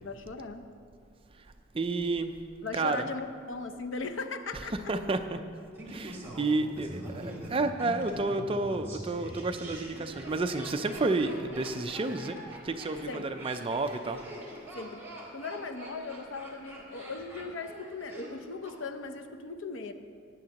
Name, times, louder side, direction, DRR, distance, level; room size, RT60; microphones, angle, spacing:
voice 1, 0.0-0.6 2.6-4.9 13.1-13.3 14.7-15.0 15.3-19.9, left 3 dB, 75° left, 7 dB, 0.7 m, -38 dB
voice 2, 1.7-2.3 2.7-3.0 4.9-5.4 5.9-14.2, right 3 dB, 30° right, 8 dB, 0.4 m, -31 dB
Laughter, 5.8-18.8 19.0-19.1, right 1 dB, 10° right, 2.0 m, -44 dB
17.0 x 9.2 x 2.9 m, 2.2 s
head